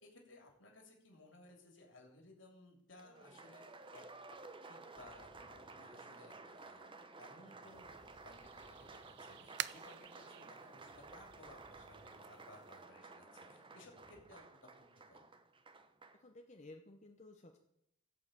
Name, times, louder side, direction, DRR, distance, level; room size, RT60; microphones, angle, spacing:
voice 1, 0.0-3.6 3.9-4.1 4.3-15.3, left 2 dB, 70° left, 1 dB, 3.2 m, -60 dB
Applause, 3.0-16.2, right 3 dB, 25° right, 0.8 m, -55 dB
sound 1, 4.9-14.3, equal, ahead, 2.5 m, -67 dB
sound 2, 7.6-12.9, right 13 dB, 60° right, 0.4 m, -50 dB
voice 2, 16.1-17.6, left 2 dB, 35° left, 3 dB, 0.9 m, -56 dB
16.0 x 5.7 x 8.0 m, 0.80 s
head